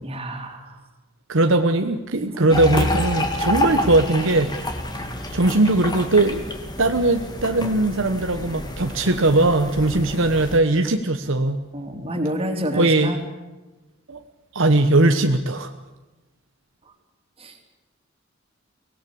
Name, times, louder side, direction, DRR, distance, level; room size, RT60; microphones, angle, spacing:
voice 1, 0.0-0.8 2.2-2.6 3.6-3.9 4.9-5.0 11.7-13.2 17.4-17.6, equal, 30° right, 4 dB, 3.4 m, -29 dB
voice 2, 1.3-4.5 5.3-6.4 6.8-11.6 12.8-13.1 14.1-14.2 14.5-15.7, right 2 dB, 70° right, 6 dB, 1.2 m, -19 dB
sound 1, 2.5-10.6, left 1 dB, 20° left, 2.5 m, -28 dB
23.5 x 18.0 x 8.6 m, 1.1 s
head